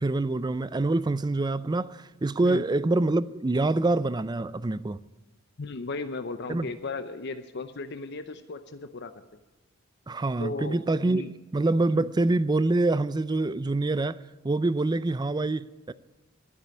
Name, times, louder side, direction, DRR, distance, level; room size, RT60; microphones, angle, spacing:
voice 1, 0.0-5.0 6.5-6.7 10.1-14.2 14.4-15.9, right 2 dB, 20° right, 0.4 m, -26 dB
voice 2, 5.6-9.1 10.4-11.3 11.9-12.1, left 3 dB, 55° left, 0.7 m, -36 dB
12.5 x 9.3 x 9.5 m
head